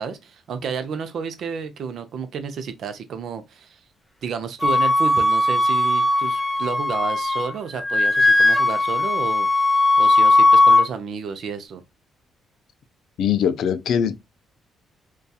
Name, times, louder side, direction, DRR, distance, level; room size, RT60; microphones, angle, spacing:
voice 1, 0.0-3.8 4.2-11.8, right 6 dB, 65° right, 0.5 m, -31 dB
Wind instrument woodwind instrument, 4.6-7.5 7.8-10.9, left 2 dB, 10° left, 0.5 m, -18 dB
voice 2, 13.2-14.2, left 8 dB, 75° left, 0.3 m, -21 dB
2.7 x 2.3 x 2.2 m
cardioid pair, 90°, 0 cm